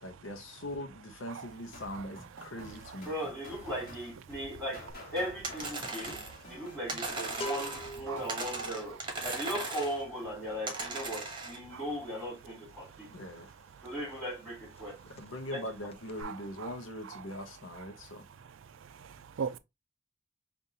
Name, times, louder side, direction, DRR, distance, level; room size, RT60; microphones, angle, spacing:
voice 1, 0.0-3.1 13.1-13.5 15.0-18.3, left 1 dB, 70° left, 0.8 m, -41 dB
sound 1, 1.7-8.4, left 1 dB, 50° left, 1.5 m, -50 dB
voice 2, 3.1-4.9 5.1-13.1 13.8-15.0 15.5-15.6, equal, 10° left, 2.8 m, -38 dB
sound 2, 4.9-5.2 5.4-14.0 14.3-14.5 14.8-15.6 15.9-16.2, equal, 30° left, 0.4 m, -45 dB
sound 3, 5.4-6.4 6.9-8.0 8.3-10.0 10.7-11.6, right 3 dB, 25° right, 1.0 m, -38 dB
voice 3, 16.2-16.7 19.0-19.6, right 6 dB, 75° right, 0.4 m, -39 dB
5.2 x 2.5 x 2.7 m
head